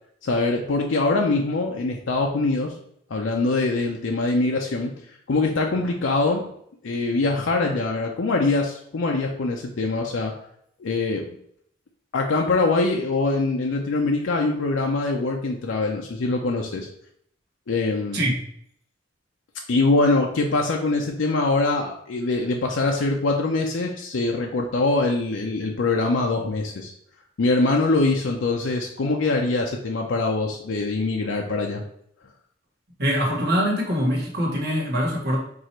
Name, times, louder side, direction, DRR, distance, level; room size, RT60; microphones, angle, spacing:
voice 1, 0.2-2.8 3.1-4.9 5.3-6.4 6.8-10.3 10.8-11.2 12.1-16.9 17.7-18.2 19.7-26.9 27.4-31.8, left 3 dB, 85° left, 1 dB, 0.5 m, -23 dB
voice 2, 33.0-35.4, equal, 60° right, -1 dB, 1.3 m, -23 dB
4.7 x 2.5 x 4.2 m, 0.68 s
head